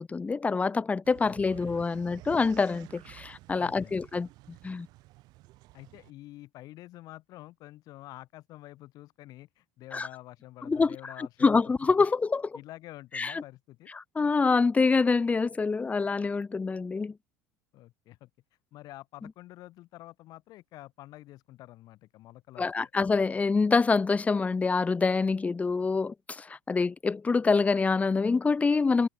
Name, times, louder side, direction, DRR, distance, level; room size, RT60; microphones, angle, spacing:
voice 1, 0.0-4.3 4.6-4.9 9.9-10.1 10.7-12.6 13.1-13.4 14.0-17.1 22.6-29.1, left 4 dB, 20° left, 0.7 m, -26 dB
sound 1, 1.0-6.1, right 19 dB, 60° right, 7.7 m, -51 dB
voice 2, 1.2-2.0 3.6-4.0 5.7-11.7 12.1-12.2 12.5-13.9 17.7-18.3 18.7-22.9, left 16 dB, 55° left, 1.9 m, -48 dB
hypercardioid pair, 80°, 8 cm